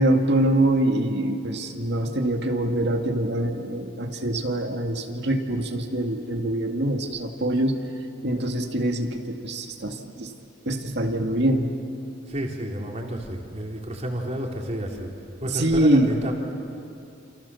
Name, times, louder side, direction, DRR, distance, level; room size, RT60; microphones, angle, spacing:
voice 1, 0.0-7.9 8.2-10.3 10.7-11.7 15.4-16.2, right 1 dB, 60° right, 3 dB, 2.1 m, -24 dB
voice 2, 12.3-15.1 15.4-16.3, equal, 35° right, 0 dB, 3.7 m, -31 dB
29.5 x 28.5 x 7.1 m, 2.6 s
head